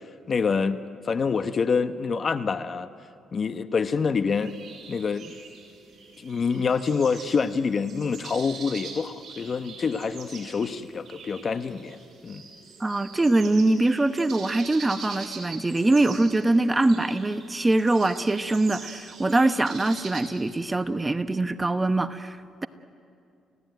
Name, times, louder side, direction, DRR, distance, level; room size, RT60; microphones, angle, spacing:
voice 1, 0.3-0.8 1.0-2.9 3.3-4.5 4.9-5.3 6.2-12.0 12.2-12.4, left 5 dB, 45° left, 10 dB, 1.0 m, -26 dB
sound 1, 4.4-20.2, right 5 dB, 60° right, 5.9 m, -44 dB
voice 2, 12.8-22.7, right 2 dB, 20° right, 10 dB, 1.0 m, -23 dB
29.5 x 17.0 x 9.4 m, 2.4 s
cardioid pair, 90°, 0 cm